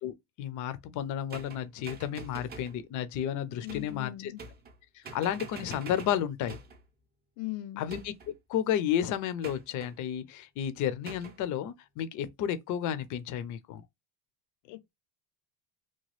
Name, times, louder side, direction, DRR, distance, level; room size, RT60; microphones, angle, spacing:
voice 1, 0.0-4.3 5.1-6.6 7.8-8.1 8.5-13.8, left 10 dB, 45° left, 0.5 m, -32 dB
sound 1, 1.3-2.8 3.7-4.0 4.4-4.8 5.0-6.8 7.9-8.4 9.4-9.9 11.1-11.4, right 4 dB, 25° right, 0.5 m, -45 dB
voice 2, 3.6-4.4 7.4-7.8 14.6-14.9, left 15 dB, 90° left, 0.5 m, -39 dB
2.9 x 2.3 x 3.0 m
cardioid pair, 135°, 44 cm